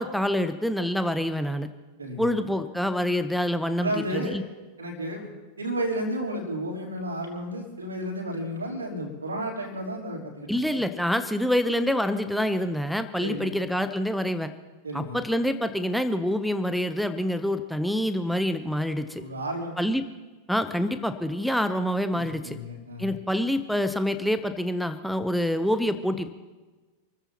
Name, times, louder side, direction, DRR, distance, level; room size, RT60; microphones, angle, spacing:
voice 1, 0.0-1.7 2.2-4.4 10.5-14.5 14.9-19.2 19.8-20.0 20.5-22.6 23.0-26.3, equal, ahead, 9 dB, 0.9 m, -26 dB
voice 2, 2.0-2.3 3.8-4.4 4.8-10.8 13.2-13.5 14.8-15.2 19.2-19.7 22.1-23.1, right 1 dB, 75° right, 0 dB, 3.7 m, -32 dB
28.5 x 15.0 x 3.0 m, 1.3 s
figure-of-eight pair, 90°, 0 cm